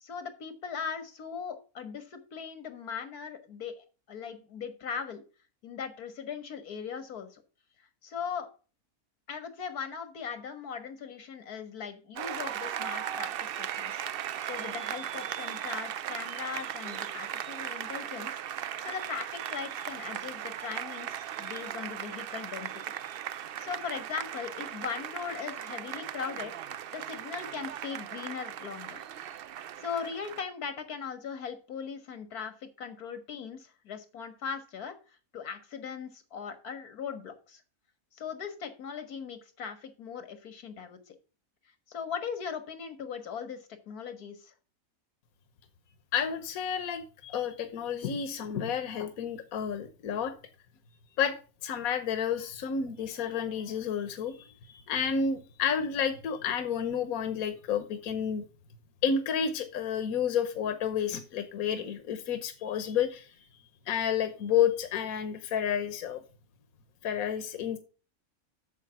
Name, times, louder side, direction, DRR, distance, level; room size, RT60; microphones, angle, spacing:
voice 1, 0.0-3.8 4.1-5.2 5.6-7.4 8.0-8.5 9.3-14.0 14.4-18.3 18.6-22.8 23.4-26.6 26.9-29.0 29.8-35.0 35.3-37.6 38.1-41.2 41.9-44.5, left 6 dB, 90° left, 10 dB, 2.0 m, -39 dB
Applause, 12.2-30.4, right 10 dB, 65° right, 0.5 m, -37 dB
voice 2, 46.1-50.3 51.2-51.3 51.6-58.4 59.0-63.3 63.9-66.2 67.0-67.8, left 7 dB, 70° left, 10 dB, 1.4 m, -30 dB
8.3 x 7.0 x 5.7 m, 0.35 s
omnidirectional pair, 1.6 m